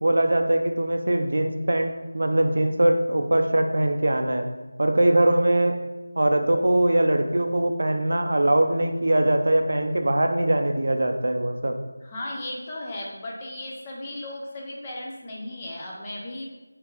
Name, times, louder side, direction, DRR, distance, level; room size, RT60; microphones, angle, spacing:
voice 1, 0.0-4.5 4.8-5.8 6.2-11.8, right 1 dB, 60° right, 5 dB, 0.4 m, -22 dB
voice 2, 12.0-16.5, left 1 dB, 15° left, -3 dB, 0.3 m, -36 dB
3.3 x 3.3 x 3.0 m, 1.1 s
figure-of-eight pair, 175°, 0 cm